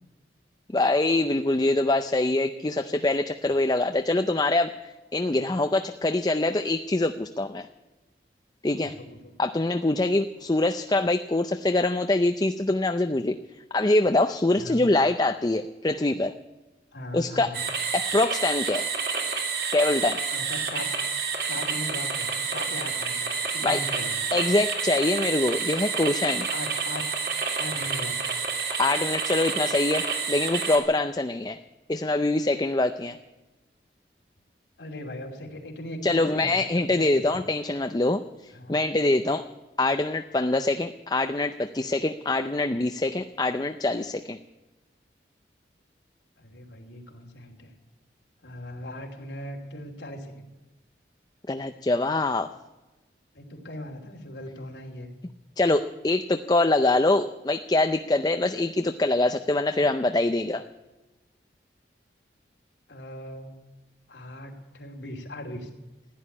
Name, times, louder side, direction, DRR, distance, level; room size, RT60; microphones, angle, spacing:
voice 1, 0.7-7.7 8.6-8.9 9.4-13.3 13.7-16.3 17.1-17.5 17.9-18.9 19.7-20.2 23.6-23.8 24.3-26.5 28.8-31.6 31.9-33.2 36.0-39.5 39.8-44.4 51.5-52.5 55.6-60.6, left 2 dB, 20° left, 8 dB, 0.5 m, -24 dB
voice 2, 8.8-9.4 14.6-14.9 16.9-17.7 20.3-20.9 21.4-24.2 26.5-27.1 27.5-28.5 34.8-37.4 38.5-38.8 46.4-47.7 48.4-50.5 53.3-55.1 62.9-63.7 64.1-65.7, left 1 dB, 85° left, 1 dB, 2.9 m, -39 dB
sound 1, 17.5-30.8, right 5 dB, 60° right, 2.9 m, -29 dB
15.5 x 10.5 x 8.6 m, 1.1 s
head